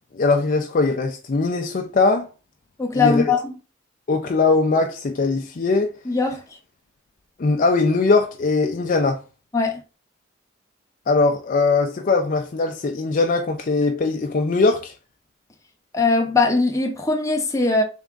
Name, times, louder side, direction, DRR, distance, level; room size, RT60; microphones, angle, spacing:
voice 1, 0.1-2.3 2.9-3.2 4.1-5.9 7.4-9.2 11.1-14.9, left 3 dB, 45° left, 0.4 m, -20 dB
voice 2, 2.8-3.5 6.1-6.4 9.5-9.8 15.9-17.8, left 3 dB, 15° left, 0.7 m, -20 dB
3.5 x 3.4 x 3.7 m
head